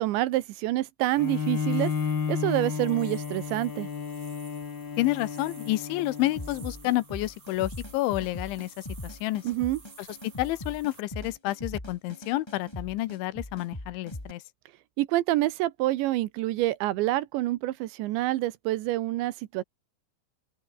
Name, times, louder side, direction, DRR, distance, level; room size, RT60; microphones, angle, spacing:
voice 1, 0.0-1.9 2.3-3.9 9.4-9.8 15.0-19.6, right 16 dB, 80° right, 3.2 m, -27 dB
sound 1, 1.0-11.0, right 4 dB, 40° right, 7.1 m, -53 dB
Bowed string instrument, 1.2-6.8, left 6 dB, 40° left, 1.7 m, -32 dB
voice 2, 5.0-9.4 10.0-14.4, left 17 dB, 80° left, 3.3 m, -30 dB
sound 2, 6.4-14.3, left 1 dB, 5° left, 2.5 m, -40 dB
open air
omnidirectional pair, 5.4 m